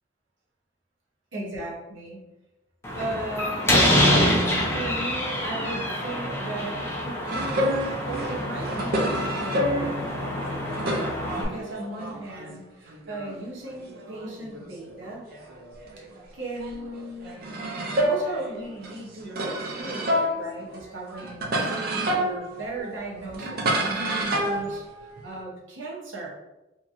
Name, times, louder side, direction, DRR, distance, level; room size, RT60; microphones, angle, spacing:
voice 1, 1.3-2.2 2.9-4.0 4.7-10.1 11.3-15.3 16.3-17.4 18.0-26.3, right 2 dB, 70° right, -3 dB, 0.8 m, -37 dB
Slam, 2.8-11.5, left 1 dB, 15° left, 0.5 m, -26 dB
sound 1, 7.3-12.6 12.9-16.2 16.6-25.4, right 1 dB, 50° right, 0.5 m, -29 dB
2.9 x 2.6 x 2.4 m, 1.0 s
head